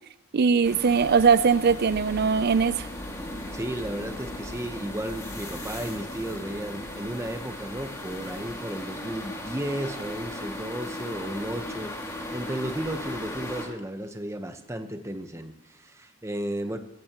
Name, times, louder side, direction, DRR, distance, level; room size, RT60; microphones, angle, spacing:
voice 1, 0.3-2.9, right 5 dB, 50° right, 16 dB, 0.5 m, -21 dB
sound 1, 0.6-13.7, left 1 dB, 15° left, 2.2 m, -37 dB
voice 2, 3.5-11.9 12.3-16.8, right 1 dB, 15° right, 7 dB, 1.0 m, -34 dB
16.0 x 16.0 x 3.0 m, 0.91 s
head